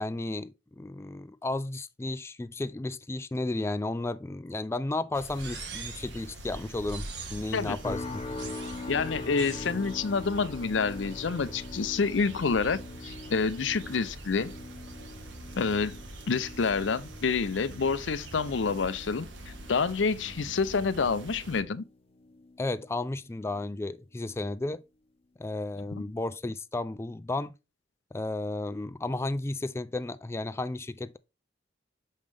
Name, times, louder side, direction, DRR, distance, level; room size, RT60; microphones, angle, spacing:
voice 1, 0.0-8.2 22.6-24.8 25.4-27.5 28.1-31.2, left 2 dB, 15° left, 0.3 m, -33 dB
sound 1, 5.1-21.6, right 1 dB, 85° right, 1.3 m, -44 dB
sound 2, 5.4-6.2 6.9-7.6 8.4-8.9 9.4-9.7, right 6 dB, 65° right, 1.4 m, -43 dB
sound 3, 7.8-23.1 23.4-23.8 24.3-24.5, left 3 dB, 35° left, 0.8 m, -43 dB
voice 2, 8.9-14.5 15.6-16.0 16.3-19.3 19.7-21.8 26.0-26.1, left 5 dB, 90° left, 0.6 m, -28 dB
6.4 x 5.3 x 3.4 m
head